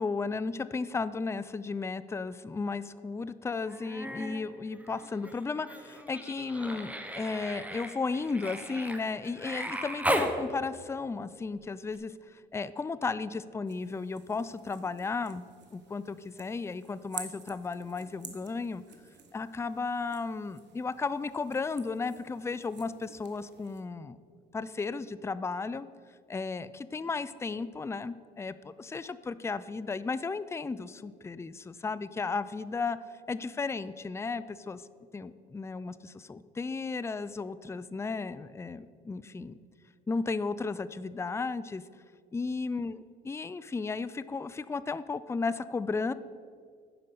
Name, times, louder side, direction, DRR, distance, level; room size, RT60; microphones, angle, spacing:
voice 1, 0.0-15.4 15.7-18.8 19.3-24.2 24.5-25.9 26.3-33.0 33.3-34.8 35.1-39.6 40.1-41.8 42.3-46.1, left 4 dB, 15° left, 15 dB, 0.3 m, -34 dB
Human voice, 3.7-4.4 4.7-10.3 11.9-12.0, equal, 5° right, 0.9 m, -36 dB
sound 1, 13.7-23.8, right 7 dB, 60° right, 1.2 m, -50 dB
9.8 x 5.3 x 6.8 m, 2.1 s
cardioid pair, 90°, 20 cm